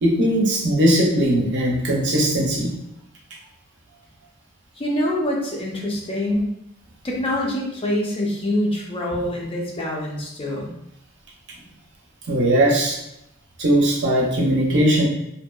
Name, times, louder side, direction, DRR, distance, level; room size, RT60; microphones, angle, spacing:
voice 1, 0.0-2.7 12.3-13.0 13.6-15.1, right 1 dB, 55° right, -2 dB, 0.6 m, -19 dB
voice 2, 4.7-6.6 7.0-10.7, left 1 dB, 25° left, -2 dB, 0.4 m, -25 dB
2.7 x 2.2 x 2.2 m, 0.80 s
head